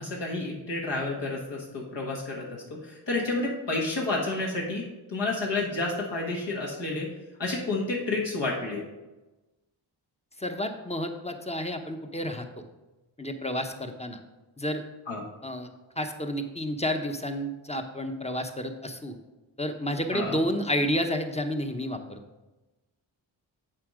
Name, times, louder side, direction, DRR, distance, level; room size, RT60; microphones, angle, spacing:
voice 1, 0.0-2.5 2.8-4.8 5.1-7.1 7.4-8.8 15.1-15.2 20.1-20.4, left 2 dB, 60° left, -3 dB, 1.6 m, -30 dB
voice 2, 10.4-12.5 13.2-14.2 14.6-14.8 15.4-15.7 16.0-19.2 19.6-22.2, equal, 15° left, 6 dB, 0.9 m, -30 dB
7.6 x 4.3 x 5.0 m, 1.1 s
supercardioid pair, 45°, 49 cm